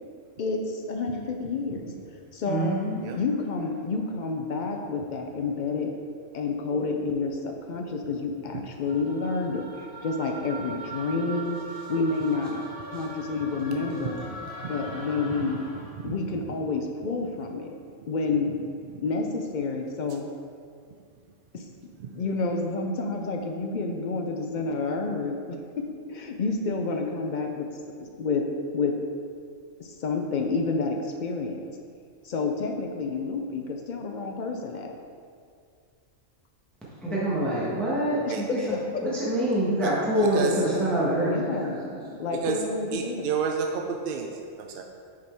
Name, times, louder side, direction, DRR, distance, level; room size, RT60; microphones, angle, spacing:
voice 1, 0.4-1.8 2.3-2.8 3.1-5.9 6.3-11.6 11.9-12.6 12.9-14.2 14.7-15.7 16.0-17.8 18.1-18.5 19.0-20.3 21.5-21.6 22.1-27.7 28.0-28.4 28.7-28.9 29.8-31.6 32.2-34.9 38.3-38.6 38.9-39.0 41.2-41.9 42.2-43.3, left 4 dB, 70° left, 3 dB, 0.4 m, -29 dB
voice 2, 2.5-3.0 12.9-13.0 37.0-41.3 41.8-42.1, right 1 dB, ahead, -8 dB, 1.2 m, -26 dB
sound 1, 8.9-16.1, right 2 dB, 80° right, 1.4 m, -41 dB
voice 3, 40.2-40.6 42.4-42.6 42.9-44.8, right 6 dB, 65° right, 3 dB, 0.5 m, -30 dB
6.1 x 4.3 x 4.6 m, 2.2 s
omnidirectional pair, 1.3 m